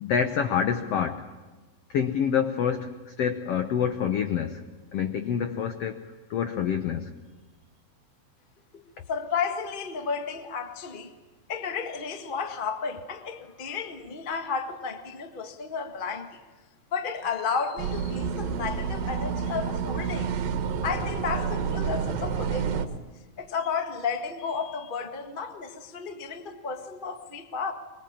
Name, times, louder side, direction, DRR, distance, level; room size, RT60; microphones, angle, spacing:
voice 1, 0.0-1.3 1.9-4.6 4.9-6.0 6.3-7.0, left 7 dB, 75° left, 7 dB, 1.4 m, -27 dB
voice 2, 9.1-11.1 11.5-16.4 16.9-20.3 20.8-22.9 23.4-27.7, left 5 dB, 40° left, 6 dB, 0.7 m, -32 dB
sound 1, 17.8-22.9, right 6 dB, 80° right, 3.2 m, -29 dB
24.5 x 23.0 x 8.7 m, 1.3 s
omnidirectional pair, 4.0 m